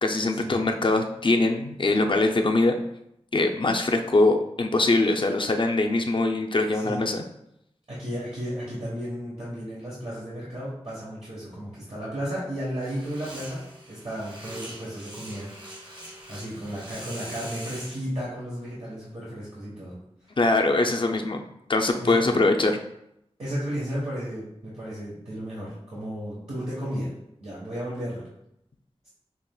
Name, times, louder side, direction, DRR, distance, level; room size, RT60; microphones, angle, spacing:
voice 1, 0.0-2.8 3.3-7.2 20.4-21.4 21.7-22.8, left 2 dB, 50° left, 4 dB, 0.5 m, -22 dB
voice 2, 7.9-20.0 22.0-22.3 23.4-27.1 27.4-28.3, equal, 70° right, -8 dB, 1.3 m, -34 dB
sound 1, 12.8-18.0, right 1 dB, 50° right, 1.3 m, -42 dB
5.8 x 2.9 x 2.3 m, 0.80 s
wide cardioid pair, 60°, 11 cm